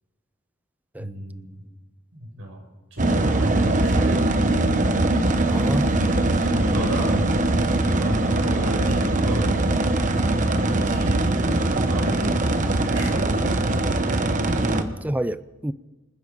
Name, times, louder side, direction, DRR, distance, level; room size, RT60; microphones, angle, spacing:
voice 1, 1.0-1.6 2.1-2.6 2.9-4.4 5.8-7.3 7.8-9.6 10.4-13.5 14.6-15.0, right 1 dB, 85° right, 6.3 m, -34 dB
sound 1, 3.0-14.8, right 2 dB, 40° right, 1.0 m, -21 dB
voice 2, 5.5-5.9 14.6-15.7, right 1 dB, 10° right, 0.4 m, -28 dB
26.5 x 9.9 x 5.2 m
head